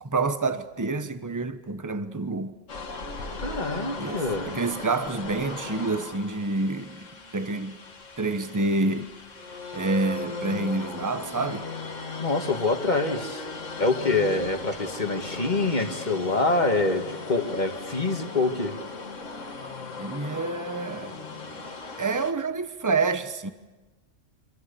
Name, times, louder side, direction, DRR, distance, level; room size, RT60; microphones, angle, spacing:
voice 1, 0.0-2.6 4.0-7.8 8.2-9.1 9.7-11.7 20.0-21.3 21.5-21.6 22.0-23.5, right 3 dB, 15° right, 1.0 m, -28 dB
sound 1, 2.7-22.3, left 4 dB, 80° left, 2.2 m, -38 dB
voice 2, 3.4-4.6 12.2-13.4 13.8-18.8, left 3 dB, 35° left, 2.0 m, -26 dB
Tools, 10.0-10.4 11.0-11.1 11.3-11.4 11.7-11.9 12.2-12.3 12.6-16.0, right 2 dB, 45° right, 4.2 m, -46 dB
27.0 x 26.0 x 7.0 m
omnidirectional pair, 1.3 m